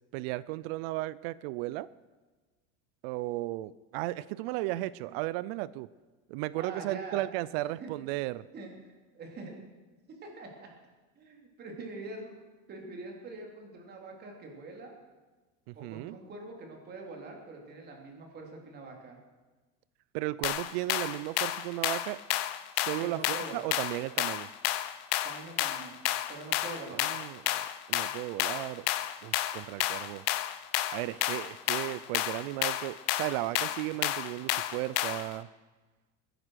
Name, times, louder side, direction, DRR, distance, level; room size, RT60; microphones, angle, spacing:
voice 1, 0.1-1.9 3.0-5.9 6.3-8.4 15.7-16.2 20.1-22.2 22.8-24.5 26.9-28.9 29.2-30.2 30.9-35.5, right 17 dB, 55° right, 19 dB, 0.5 m, -35 dB
voice 2, 6.5-7.3 7.8-7.9 8.5-8.7 9.1-9.6 10.2-10.7 11.1-12.3 12.7-14.9 15.7-19.2 23.0-23.7 25.2-26.0 26.3-27.0, right 3 dB, 25° right, 1 dB, 3.3 m, -44 dB
sound 1, 20.4-35.3, left 14 dB, 50° left, 0.9 m, -31 dB
21.5 x 10.0 x 6.3 m, 1.3 s
supercardioid pair, 160°, 37 cm